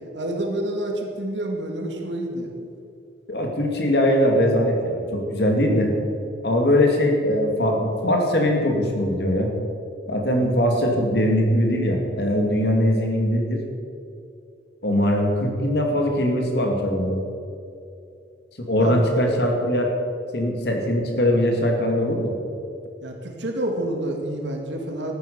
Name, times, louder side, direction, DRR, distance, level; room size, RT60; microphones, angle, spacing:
voice 1, 0.1-2.5 18.8-19.0 23.0-25.1, right 1 dB, 80° right, 1 dB, 2.3 m, -28 dB
voice 2, 3.3-5.9 6.4-9.5 10.1-13.6 14.8-17.2 18.6-19.9 20.3-22.3, equal, 60° left, 2 dB, 2.5 m, -21 dB
13.5 x 11.0 x 6.9 m, 2.6 s
head